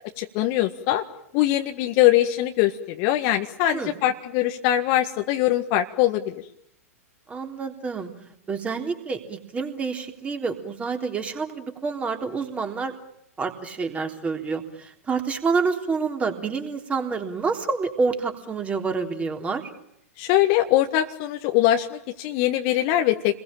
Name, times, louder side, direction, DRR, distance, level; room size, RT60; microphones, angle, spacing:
voice 1, 0.2-1.0 1.3-6.3 20.2-23.4, left 13 dB, 40° left, 5 dB, 1.8 m, -22 dB
voice 2, 7.3-8.1 8.5-12.9 13.4-19.7, right 4 dB, 15° right, 5 dB, 3.6 m, -28 dB
29.5 x 22.0 x 8.9 m, 0.77 s
figure-of-eight pair, 105°, 8 cm